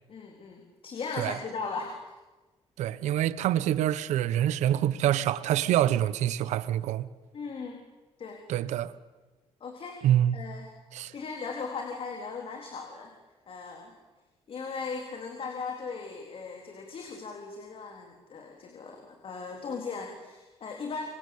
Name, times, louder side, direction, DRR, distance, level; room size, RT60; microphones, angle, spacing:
voice 1, 0.1-2.1 7.3-7.8 8.2-8.4 9.6-10.0 10.3-10.7 11.1-13.1 13.5-14.0 14.5-21.0, left 4 dB, 55° left, 3.8 m, -38 dB
voice 2, 2.8-7.1 8.5-8.9 10.0-10.4 10.9-11.1, right 12 dB, 90° right, 1.1 m, -26 dB
26.5 x 25.0 x 8.6 m
cardioid pair, 95°, 12 cm